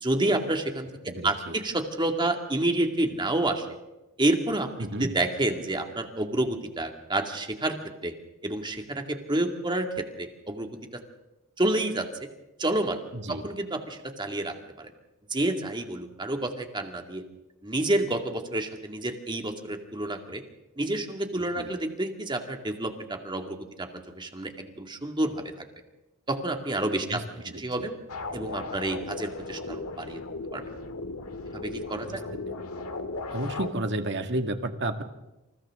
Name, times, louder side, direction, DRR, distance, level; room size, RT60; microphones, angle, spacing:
voice 1, 0.0-0.9 1.2-3.7 4.2-4.7 5.0-7.8 8.0-8.1 8.4-10.7 11.6-12.1 12.6-13.0 13.3-14.9 15.3-17.2 17.6-20.4 20.8-23.9 24.2-25.7 26.3-27.2 27.6-27.9 28.3-30.2 30.5-30.6 31.6-32.2, right 1 dB, 20° right, 4 dB, 2.3 m, -29 dB
voice 2, 1.1-1.6 4.8-5.1 13.1-13.5 21.5-21.7 27.1-27.9 32.0-32.4 33.3-35.0, right 1 dB, 55° right, 6 dB, 2.0 m, -32 dB
sound 1, 28.1-33.7, left 3 dB, 85° left, 1.8 m, -36 dB
29.0 x 27.5 x 3.8 m, 0.99 s
head